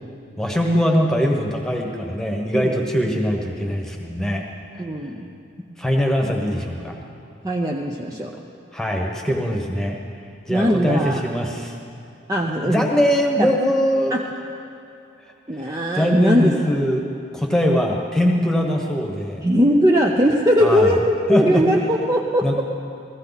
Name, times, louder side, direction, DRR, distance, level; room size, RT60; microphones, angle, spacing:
voice 1, 0.4-4.4 5.8-6.9 8.7-10.0 10.5-11.7 12.6-14.1 15.6-15.7 15.9-17.1 17.3-19.4 20.6-20.9 21.3-21.6 22.4-22.6, equal, 5° left, 0 dB, 1.2 m, -21 dB
voice 2, 4.8-5.3 7.4-8.3 10.5-11.2 12.3-12.9 13.4-13.5 14.1-14.3 15.5-16.6 19.4-22.6, equal, 20° right, -1 dB, 0.6 m, -19 dB
16.0 x 14.5 x 4.1 m, 2.6 s
head